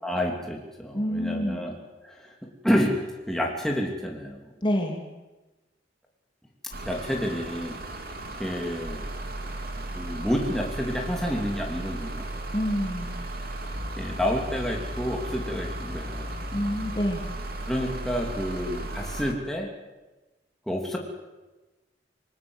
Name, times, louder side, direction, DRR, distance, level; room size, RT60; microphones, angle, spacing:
voice 1, 0.0-1.7 2.0-2.3 2.6-3.0 3.3-4.5 6.8-7.8 8.4-9.0 9.9-12.3 14.0-16.3 17.7-19.7 20.7-21.0, equal, ahead, -1 dB, 2.9 m, -29 dB
voice 2, 0.9-1.6 4.6-5.0 12.5-13.1 16.5-17.2, equal, 25° left, 2 dB, 2.9 m, -27 dB
sound 1, 6.7-19.3, right 1 dB, 50° right, 3.0 m, -35 dB
27.0 x 19.5 x 8.1 m, 1.1 s
head